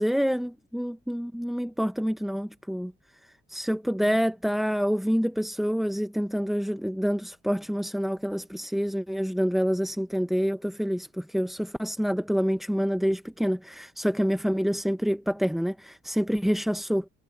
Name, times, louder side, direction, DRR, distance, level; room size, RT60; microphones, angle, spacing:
voice 1, 0.0-2.9 3.5-17.0, equal, ahead, 0.5 m, -27 dB
cardioid pair, 90°, 30 cm